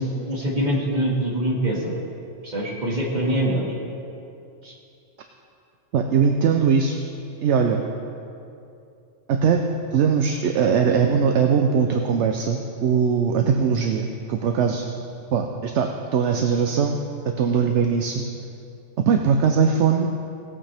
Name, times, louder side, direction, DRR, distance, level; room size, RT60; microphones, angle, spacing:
voice 1, 0.0-2.0 2.4-3.7 4.6-4.7 13.4-13.6, right 1 dB, 35° right, -4 dB, 2.1 m, -24 dB
voice 2, 5.9-7.0 7.4-7.8 9.3-9.6 9.9-14.9 15.3-17.0 17.4-18.2 19.1-20.1, right 6 dB, 70° right, 4 dB, 0.9 m, -20 dB
18.0 x 8.7 x 3.4 m, 2.6 s
omnidirectional pair, 1.3 m